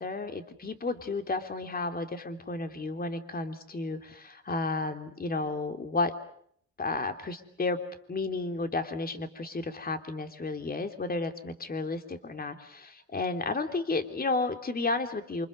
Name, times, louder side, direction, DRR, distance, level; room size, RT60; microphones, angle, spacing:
voice 1, 0.0-6.1 6.8-7.8 8.1-15.5, left 3 dB, 30° left, 7 dB, 3.1 m, -32 dB
27.5 x 26.0 x 6.7 m, 0.65 s
cardioid pair, 90°, 30 cm